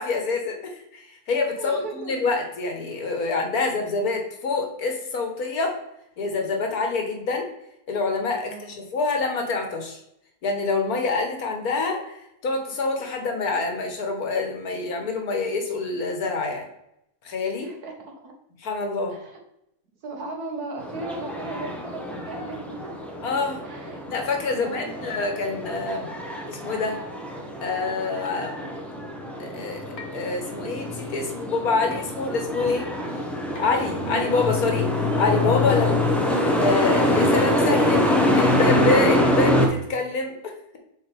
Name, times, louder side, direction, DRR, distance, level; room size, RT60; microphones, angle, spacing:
voice 1, 0.0-5.8 6.2-7.5 7.9-10.0 10.4-12.2 12.4-16.7 17.2-17.7 18.6-19.2 23.2-23.6 24.1-26.1 26.5-27.0 27.6-28.6 29.4-29.9 30.1-32.9 33.6-36.2 36.6-40.8, left 3 dB, 75° left, 3 dB, 1.8 m, -26 dB
voice 2, 1.6-2.1 8.5-8.8 17.6-18.3 19.1-19.4 20.0-22.9 23.6-24.0 24.5-25.3 28.4-28.5 35.8-36.1, right 3 dB, 85° right, 2 dB, 1.9 m, -37 dB
sound 1, 20.8-39.7, left 1 dB, ahead, 0.8 m, -25 dB
sound 2, 26.5-26.7 28.3-28.4 30.0-30.3 31.9-32.2 33.6-33.9, left 4 dB, 60° left, 1.5 m, -44 dB
7.3 x 4.6 x 3.4 m, 0.81 s
omnidirectional pair, 1.6 m